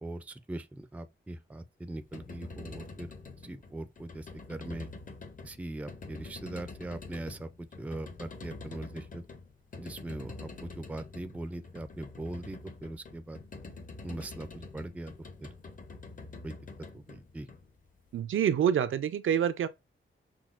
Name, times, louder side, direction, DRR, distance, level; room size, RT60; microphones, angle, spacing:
voice 1, 0.0-3.1 3.4-4.9 5.4-9.2 9.8-13.4 14.0-15.1 15.4-15.5 16.4-16.6 16.9-17.5, right 1 dB, 5° right, 0.3 m, -40 dB
sound 1, 1.9-18.1, left 3 dB, 40° left, 0.7 m, -46 dB
voice 2, 18.1-19.7, right 9 dB, 80° right, 0.5 m, -27 dB
6.0 x 2.3 x 2.4 m
wide cardioid pair, 110°, 21 cm